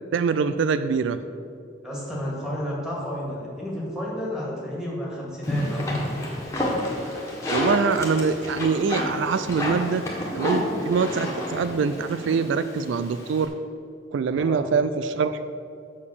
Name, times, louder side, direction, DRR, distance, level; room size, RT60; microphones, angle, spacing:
voice 1, 0.1-1.2 7.5-10.1 10.3-13.5 14.1-15.4, right 5 dB, 75° right, 12 dB, 0.3 m, -24 dB
voice 2, 1.8-6.1 14.3-14.7, equal, 5° right, -5 dB, 2.2 m, -32 dB
sound 1, 5.4-13.4, left 1 dB, 15° left, 1.5 m, -29 dB
7.3 x 6.9 x 6.7 m, 2.6 s
head